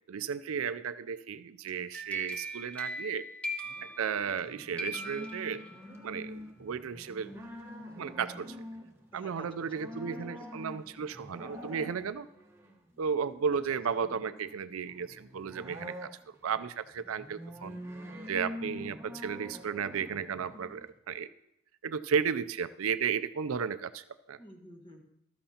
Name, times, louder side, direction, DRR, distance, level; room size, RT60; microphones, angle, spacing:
voice 1, 0.1-3.2 4.0-5.6 6.0-7.3 8.0-8.6 9.1-12.3 13.0-17.8 18.3-21.3 21.8-24.4, right 6 dB, 80° right, 14 dB, 0.5 m, -34 dB
sound 1, 1.7-4.5 4.8-6.1, equal, 5° left, 1.1 m, -39 dB
sound 2, 3.6-20.9, left 1 dB, 15° right, 1.2 m, -46 dB
voice 2, 9.1-10.4 24.4-25.0, equal, 25° left, 3 dB, 1.5 m, -52 dB
14.5 x 13.0 x 2.9 m, 0.81 s
head